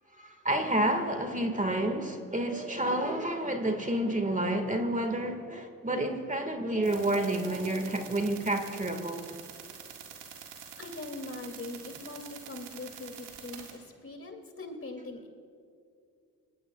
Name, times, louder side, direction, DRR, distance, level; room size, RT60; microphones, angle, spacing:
voice 1, 0.1-9.4, right 1 dB, 20° right, 1.8 m, -30 dB
sound 1, 6.8-13.7, right 8 dB, 85° right, 1.9 m, -46 dB
voice 2, 10.8-15.3, left 2 dB, 30° left, 2.7 m, -42 dB
25.0 x 19.0 x 2.4 m
hypercardioid pair, 45°, 43 cm